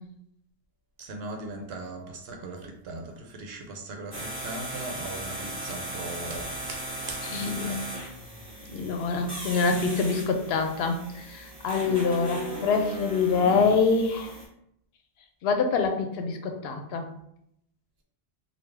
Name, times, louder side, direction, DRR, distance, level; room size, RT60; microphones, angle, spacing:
voice 1, 1.0-7.8, right 2 dB, 75° right, 3 dB, 0.8 m, -39 dB
sound 1, 4.1-14.4, right 1 dB, 25° right, 1.3 m, -37 dB
voice 2, 7.3-7.9 8.7-14.3 15.4-17.1, left 4 dB, 75° left, 5 dB, 0.8 m, -25 dB
3.5 x 2.3 x 3.2 m, 0.73 s
omnidirectional pair, 1.1 m